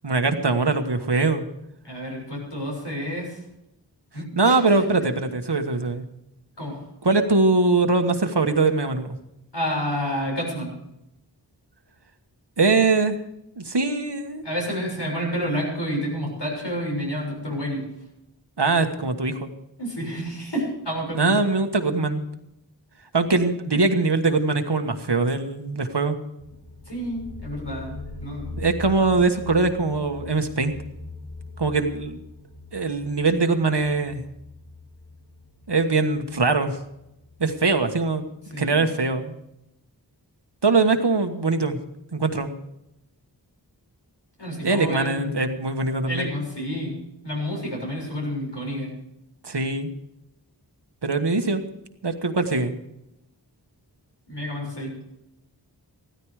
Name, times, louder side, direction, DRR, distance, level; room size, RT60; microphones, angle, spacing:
voice 1, 0.0-1.4 4.4-6.1 7.0-9.2 12.6-13.2 13.6-14.4 18.6-19.5 21.1-22.2 23.1-26.2 28.6-30.7 31.6-32.2 32.7-34.2 35.7-36.8 37.4-38.2 38.6-39.3 40.6-41.8 42.1-42.5 44.6-46.3 49.4-49.9 51.0-51.6 52.0-52.8, right 3 dB, 70° right, 7 dB, 1.4 m, -22 dB
voice 2, 1.8-3.4 4.1-4.6 6.6-6.8 9.5-10.7 14.4-17.8 19.8-21.4 26.9-28.5 38.5-38.8 44.4-45.4 46.1-48.9 54.3-54.9, equal, 75° left, -2 dB, 6.9 m, -29 dB
sound 1, 26.4-37.8, left 2 dB, 40° left, 7.6 m, -41 dB
15.5 x 13.5 x 4.9 m, 0.85 s
wide cardioid pair, 40°, 42 cm